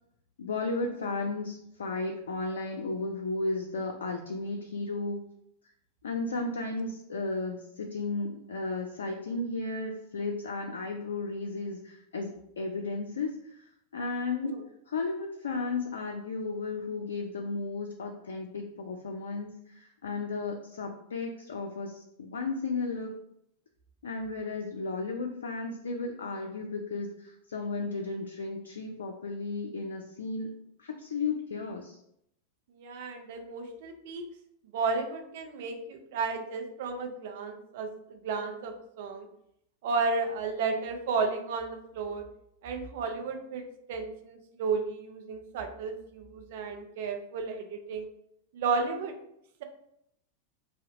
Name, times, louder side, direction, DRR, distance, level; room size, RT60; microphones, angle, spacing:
voice 1, 0.4-5.2 6.0-14.6 14.9-23.1 24.0-30.5 30.8-32.0, left 3 dB, 65° left, 3 dB, 0.3 m, -34 dB
voice 2, 32.7-34.2 34.7-39.3 39.8-42.2 42.6-48.1 48.5-49.1, right 4 dB, 55° right, 5 dB, 0.5 m, -33 dB
2.7 x 2.1 x 3.8 m, 0.76 s
figure-of-eight pair, 90°, 0 cm